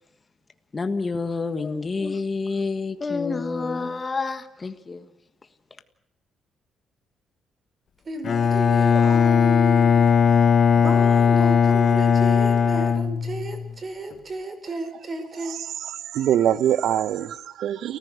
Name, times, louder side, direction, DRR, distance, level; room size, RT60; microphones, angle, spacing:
voice 1, 0.7-5.0, left 4 dB, 30° left, 1.6 m, -28 dB
voice 2, 8.1-10.1 10.7-15.6, right 2 dB, 40° right, 5.3 m, -33 dB
Bowed string instrument, 8.2-13.7, left 6 dB, 55° left, 1.3 m, -18 dB
voice 3, 15.5-18.0, right 10 dB, 75° right, 0.9 m, -24 dB
30.0 x 14.5 x 6.5 m
cardioid pair, 90°, 0 cm